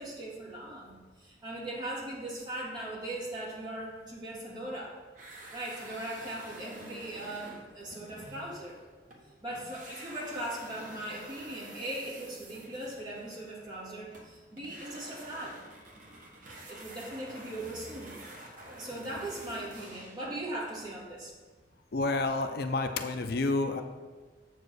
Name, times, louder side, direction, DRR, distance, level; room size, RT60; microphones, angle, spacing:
voice 1, 0.0-5.0 5.5-8.8 9.4-15.6 16.7-18.1 18.8-21.3, right 1 dB, 25° right, -6 dB, 2.3 m, -39 dB
sound 1, 5.1-9.2 9.5-20.3, right 1 dB, 50° right, 1.4 m, -49 dB
voice 2, 21.9-23.8, left 3 dB, 60° left, 7 dB, 0.5 m, -29 dB
7.5 x 4.8 x 6.4 m, 1.4 s
head